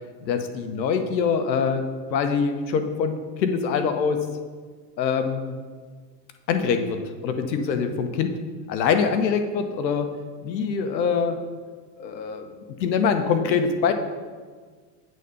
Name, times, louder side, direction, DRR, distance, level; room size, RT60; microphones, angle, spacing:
voice 1, 0.2-4.3 5.0-5.6 6.5-8.4 8.7-10.1 10.4-11.4 12.0-12.5 12.8-13.9, left 6 dB, 90° left, 7 dB, 1.1 m, -24 dB
8.5 x 4.1 x 6.7 m, 1.5 s
hypercardioid pair, 105°, 50 cm